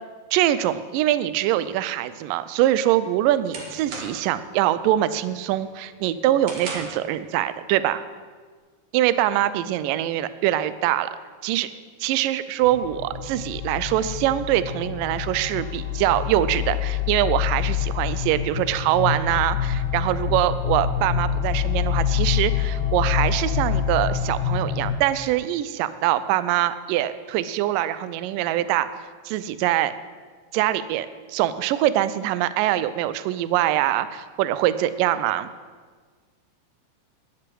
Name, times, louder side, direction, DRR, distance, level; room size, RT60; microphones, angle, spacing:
voice 1, 0.3-8.0 8.9-11.1 11.4-11.7 12.0-28.9 29.3-29.9 30.5-35.5, right 13 dB, 80° right, 14 dB, 2.1 m, -23 dB
sound 1, 2.6-4.4 4.8-5.2 5.6-7.1, right 3 dB, 50° right, 2.5 m, -37 dB
sound 2, 12.6-24.9, left 8 dB, 35° right, 2.5 m, -26 dB
10.5 x 10.0 x 7.7 m, 1.5 s
omnidirectional pair, 4.2 m